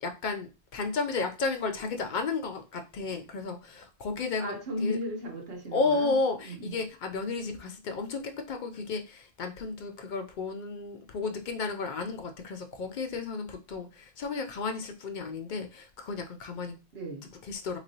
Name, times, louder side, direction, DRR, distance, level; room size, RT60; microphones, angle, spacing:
voice 1, 0.0-5.0 5.7-16.7 17.5-17.8, left 4 dB, 60° left, 5 dB, 0.5 m, -33 dB
voice 2, 4.4-6.2 6.4-6.8 16.9-17.3, equal, 60° right, 1 dB, 1.2 m, -36 dB
3.6 x 3.0 x 2.7 m, 0.30 s
omnidirectional pair, 1.1 m